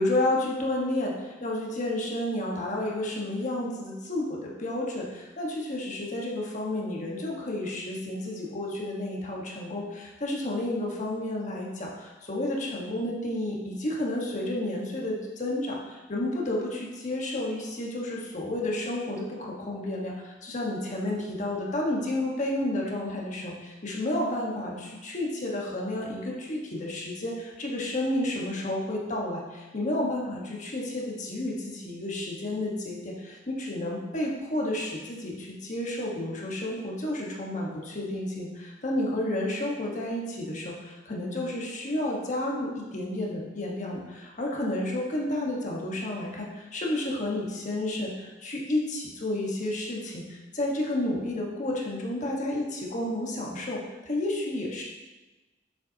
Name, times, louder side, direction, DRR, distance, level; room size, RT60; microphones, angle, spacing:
voice 1, 0.0-54.8, left 1 dB, 45° left, -2 dB, 1.4 m, -31 dB
7.2 x 7.1 x 2.8 m, 1.2 s
head